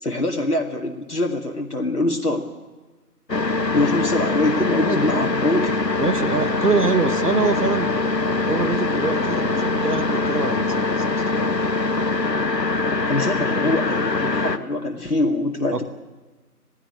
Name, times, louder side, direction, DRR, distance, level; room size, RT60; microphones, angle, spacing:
voice 1, 0.0-2.5 3.7-5.8 13.0-15.8, left 2 dB, 70° left, 1 dB, 2.0 m, -24 dB
sound 1, 3.3-14.6, left 3 dB, 90° left, 1.3 m, -23 dB
voice 2, 6.0-7.9 8.5-11.0 15.7-15.8, right 4 dB, 70° right, 11 dB, 1.6 m, -24 dB
18.0 x 15.5 x 9.8 m, 1.2 s
figure-of-eight pair, 170°, 48 cm